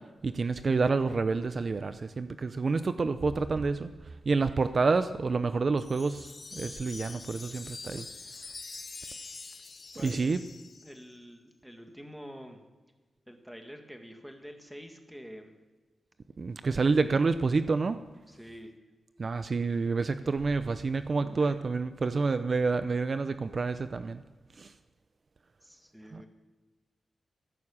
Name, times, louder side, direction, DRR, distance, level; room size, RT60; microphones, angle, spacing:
voice 1, 0.2-3.9 4.3-8.1 10.0-10.4 16.4-18.0 19.2-24.2 24.6-24.7 26.1-26.2, right 4 dB, 50° right, 11 dB, 0.6 m, -28 dB
Wind chime, 5.8-11.1, left 3 dB, 40° left, 1.0 m, -45 dB
voice 2, 10.8-12.7 13.3-15.5 18.3-18.7 21.2-21.6 25.6-26.3, equal, ahead, 4 dB, 2.0 m, -47 dB
14.5 x 11.0 x 7.2 m, 1.3 s
cardioid pair, 85°, 0 cm